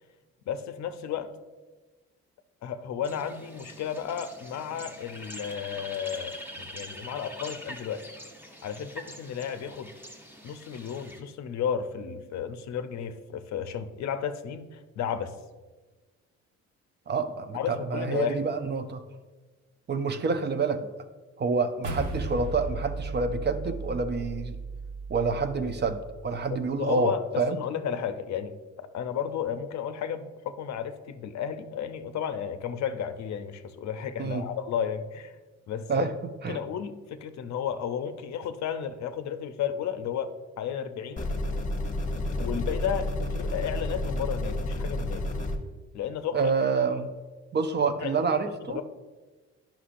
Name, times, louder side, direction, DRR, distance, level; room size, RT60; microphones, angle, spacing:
voice 1, 0.5-1.3 2.6-8.1 8.6-9.9 10.4-15.3 17.5-18.4 26.5-35.3 35.7-36.1 36.5-40.3 40.6-41.3 42.4-45.2 45.9-46.5 47.8-48.2 48.7-48.8, left 8 dB, 65° left, 10 dB, 0.6 m, -33 dB
sound 1, 3.0-11.2, equal, 5° right, 0.9 m, -44 dB
voice 2, 17.1-19.0 19.9-20.9 21.4-24.6 25.1-27.6 34.2-34.5 35.9-36.1 36.4-36.6 46.3-47.1 47.5-48.8, right 4 dB, 35° right, 8 dB, 0.5 m, -28 dB
sound 2, 21.8-26.4, right 3 dB, 75° right, 1.1 m, -36 dB
sound 3, 41.2-45.6, left 1 dB, 25° left, 0.9 m, -30 dB
9.8 x 5.8 x 2.5 m, 1.3 s
cardioid pair, 90°, 30 cm